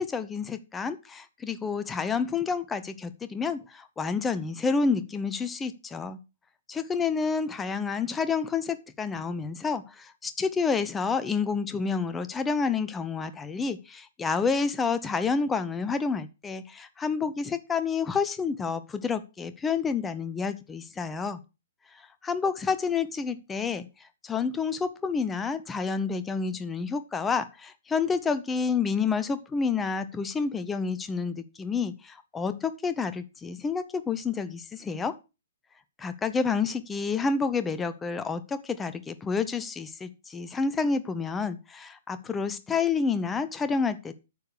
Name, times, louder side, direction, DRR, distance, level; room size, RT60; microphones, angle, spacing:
voice 1, 0.0-6.2 6.7-21.4 21.9-35.1 36.0-44.1, left 5 dB, 10° left, 12 dB, 0.9 m, -29 dB
9.6 x 6.8 x 6.2 m, 0.28 s
figure-of-eight pair, 115°, 0 cm